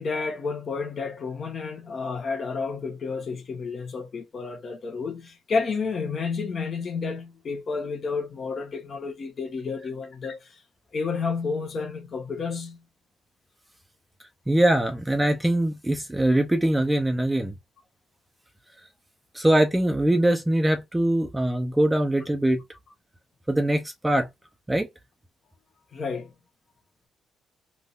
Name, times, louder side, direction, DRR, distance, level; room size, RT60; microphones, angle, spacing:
voice 1, 0.0-10.4 10.9-12.8 25.9-26.3, left 4 dB, 50° left, 1.1 m, -30 dB
voice 2, 14.5-17.5 19.3-22.6 23.5-24.3 24.7-24.9, right 1 dB, 10° right, 0.6 m, -22 dB
3.5 x 2.6 x 2.5 m
cardioid pair, 90°, 0 cm